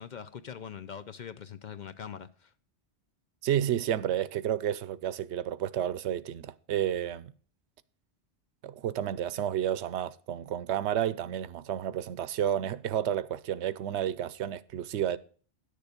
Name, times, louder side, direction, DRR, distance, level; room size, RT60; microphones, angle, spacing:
voice 1, 0.0-2.5, left 8 dB, 55° left, 0.6 m, -42 dB
voice 2, 3.4-7.3 8.6-15.2, right 10 dB, 90° right, 0.9 m, -31 dB
10.5 x 6.7 x 5.1 m
omnidirectional pair, 1.1 m